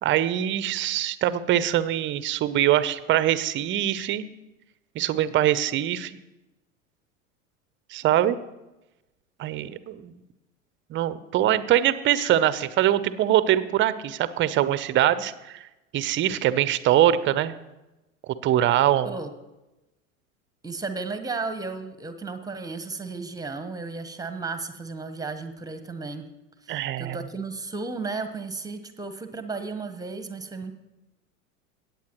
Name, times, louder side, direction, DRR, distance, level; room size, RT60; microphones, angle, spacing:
voice 1, 0.0-4.3 5.0-6.2 7.9-8.4 9.4-10.1 10.9-15.3 15.9-17.6 18.3-19.2 26.7-27.2, right 12 dB, 30° right, 15 dB, 0.6 m, -23 dB
voice 2, 20.6-26.2 26.6-30.7, right 4 dB, 10° right, 8 dB, 1.1 m, -34 dB
18.0 x 8.4 x 3.0 m, 0.99 s
figure-of-eight pair, 85°, 41 cm